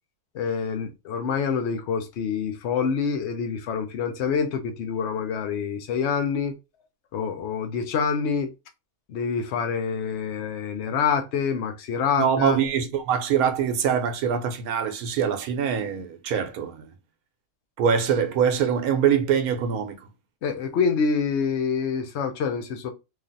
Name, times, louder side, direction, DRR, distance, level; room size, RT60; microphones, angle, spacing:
voice 1, 0.3-6.6 7.1-8.5 9.1-12.6 20.4-22.9, left 6 dB, 60° left, 0.8 m, -26 dB
voice 2, 12.2-16.9 17.8-20.1, right 7 dB, 85° right, 1.1 m, -24 dB
3.1 x 2.4 x 2.5 m
omnidirectional pair, 1.5 m